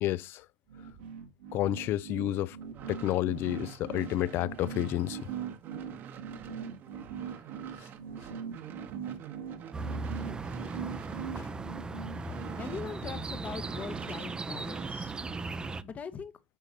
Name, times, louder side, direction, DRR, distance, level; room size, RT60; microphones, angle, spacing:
voice 1, 0.0-0.5 1.5-2.6 2.9-5.2 12.3-12.4, left 13 dB, 50° left, 0.4 m, -30 dB
sound 1, 0.7-13.2, right 7 dB, 80° right, 2.0 m, -41 dB
sound 2, 2.6-13.3 13.6-15.5, right 8 dB, 45° right, 1.1 m, -47 dB
sound 3, 9.7-15.8, right 3 dB, 15° right, 0.5 m, -37 dB
voice 2, 12.6-15.1 15.8-16.3, left 6 dB, 30° left, 0.8 m, -41 dB
7.0 x 5.8 x 2.8 m
hypercardioid pair, 95°, 5 cm